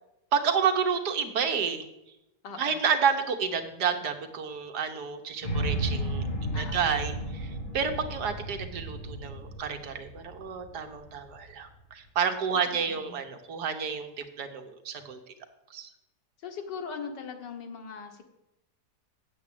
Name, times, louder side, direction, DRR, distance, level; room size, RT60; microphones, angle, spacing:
voice 1, 0.3-1.8 2.6-15.2 15.7-15.9, right 6 dB, 70° right, 7 dB, 1.6 m, -30 dB
voice 2, 2.4-2.8 6.5-6.9 12.5-13.2 16.4-18.2, left 5 dB, 90° left, 5 dB, 2.0 m, -40 dB
sound 1, 5.4-11.5, right 1 dB, 30° left, 1.8 m, -34 dB
8.0 x 7.2 x 8.5 m, 0.90 s
omnidirectional pair, 1.8 m